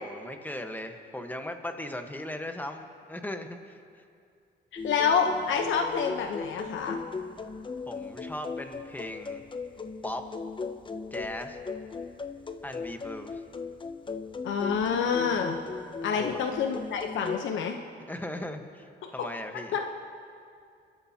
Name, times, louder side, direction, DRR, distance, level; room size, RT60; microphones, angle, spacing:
voice 1, 0.0-4.0 7.9-9.4 10.0-10.2 11.1-11.6 12.6-13.4 16.1-16.4 18.1-18.9 19.1-19.8, left 1 dB, 10° left, 5 dB, 1.3 m, -38 dB
voice 2, 4.8-7.0 14.4-15.6 16.0-17.8 19.2-19.3 19.7-19.9, left 6 dB, 75° left, 4 dB, 0.9 m, -27 dB
sound 1, 4.8-17.4, left 4 dB, 25° left, 0.7 m, -38 dB
29.5 x 13.0 x 2.9 m, 2.4 s
cardioid pair, 90°, 20 cm